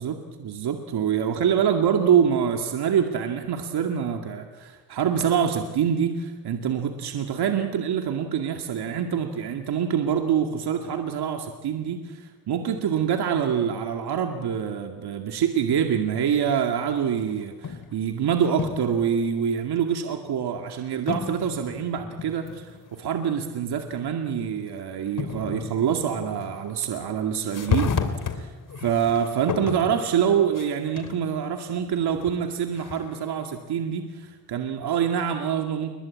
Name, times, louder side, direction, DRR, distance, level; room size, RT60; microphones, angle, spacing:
voice 1, 0.0-28.0 28.3-28.5 28.8-35.9, right 8 dB, 65° right, 4 dB, 2.3 m, -25 dB
sound 1, 17.2-18.0 18.5-19.0 19.8-19.9 21.1-23.0 23.3-23.4 24.7-24.8 25.2-27.1 27.5-31.2 31.7-33.3, left 5 dB, 45° left, 2.9 m, -32 dB
29.0 x 23.0 x 8.7 m, 1.4 s
cardioid pair, 110°, 42 cm